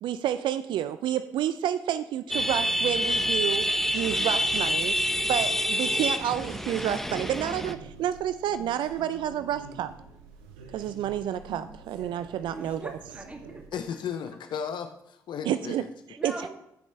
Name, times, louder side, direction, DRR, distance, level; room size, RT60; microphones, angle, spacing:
voice 1, 0.0-3.7 3.9-4.9 5.3-9.9 10.7-13.0 15.5-16.5, right 10 dB, 70° right, 12 dB, 0.4 m, -30 dB
sound 1, 2.3-7.7, equal, 5° left, 0.8 m, -27 dB
sound 2, 4.5-13.7, right 5 dB, 90° right, 0.7 m, -47 dB
voice 2, 12.5-13.8 16.2-16.5, right 1 dB, 15° right, 3 dB, 2.0 m, -41 dB
voice 3, 13.7-15.9, left 7 dB, 65° left, 8 dB, 0.6 m, -35 dB
15.0 x 5.2 x 3.2 m, 0.79 s
hypercardioid pair, 50°, 8 cm